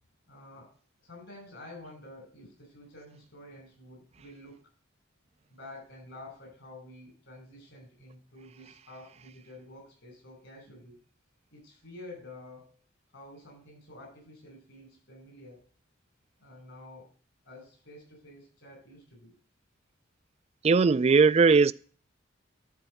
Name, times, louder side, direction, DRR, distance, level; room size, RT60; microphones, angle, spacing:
voice 1, 0.3-0.7 1.0-4.6 5.5-11.0 11.5-12.8 13.1-15.7 16.4-17.1 17.4-19.3, left 1 dB, 65° left, 5.7 m, -49 dB
voice 2, 20.6-21.7, right 4 dB, 30° right, 0.3 m, -19 dB
12.0 x 4.5 x 6.4 m
head